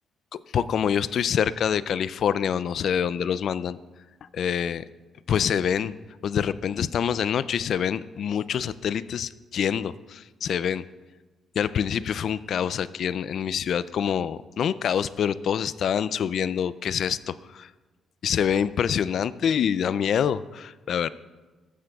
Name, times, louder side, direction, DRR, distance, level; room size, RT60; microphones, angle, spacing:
voice 1, 0.5-3.8 4.2-4.8 5.3-5.9 6.2-10.8 11.6-17.7 18.2-21.1, left 8 dB, 65° left, 17 dB, 0.3 m, -26 dB
14.5 x 9.8 x 2.3 m, 1.2 s
cardioid pair, 90°, 0 cm